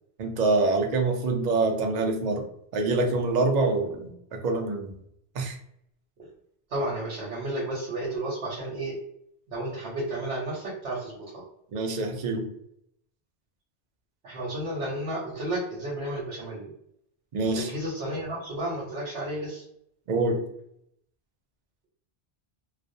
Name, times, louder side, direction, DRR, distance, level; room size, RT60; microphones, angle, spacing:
voice 1, 0.2-2.4 2.7-4.9 5.4-5.6 11.7-12.5 17.3-17.7 20.1-20.4, right 3 dB, 55° right, 3 dB, 0.5 m, -25 dB
voice 2, 6.7-9.0 9.5-11.4 14.2-16.7 17.5-19.6, right 1 dB, 85° right, -6 dB, 1.0 m, -32 dB
2.4 x 2.0 x 2.5 m, 0.73 s
omnidirectional pair, 1.1 m